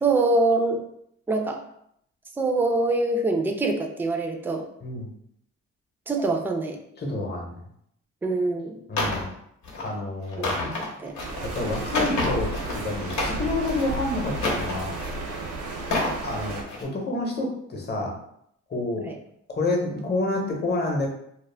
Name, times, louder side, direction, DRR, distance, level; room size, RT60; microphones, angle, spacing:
voice 1, 0.0-0.8 1.3-1.6 2.4-4.7 6.1-6.8 8.2-8.8 10.6-11.2 19.0-19.2, right 2 dB, 5° right, 3 dB, 0.3 m, -24 dB
voice 2, 7.0-7.6 8.9-9.3 9.7-10.6 11.4-14.9 16.2-18.1 18.7-19.1 19.5-21.1, left 2 dB, 35° left, 0 dB, 0.8 m, -28 dB
sound 1, 9.0-9.3 9.6-9.9 10.3-12.8 13.1-13.9 14.4-15.2 15.7-16.2 16.6-16.8, left 2 dB, 70° left, 0.8 m, -29 dB
sound 2, 11.2-16.6, right 2 dB, 90° right, 0.7 m, -33 dB
2.3 x 2.1 x 3.2 m, 0.72 s
cardioid pair, 90°, 30 cm